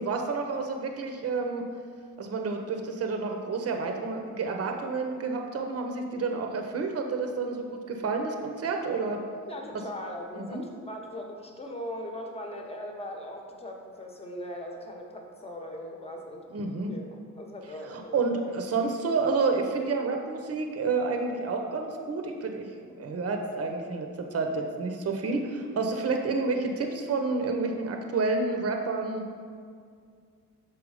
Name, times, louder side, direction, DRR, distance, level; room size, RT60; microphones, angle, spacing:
voice 1, 0.0-1.6 2.2-9.2 10.3-10.7 16.5-16.9 17.9-22.7 23.0-29.2, right 4 dB, 45° right, 3 dB, 0.8 m, -29 dB
voice 2, 9.5-16.5 16.9-18.1, left 1 dB, 20° left, 1 dB, 1.1 m, -39 dB
6.3 x 4.6 x 4.9 m, 2.1 s
cardioid pair, 90°, 33 cm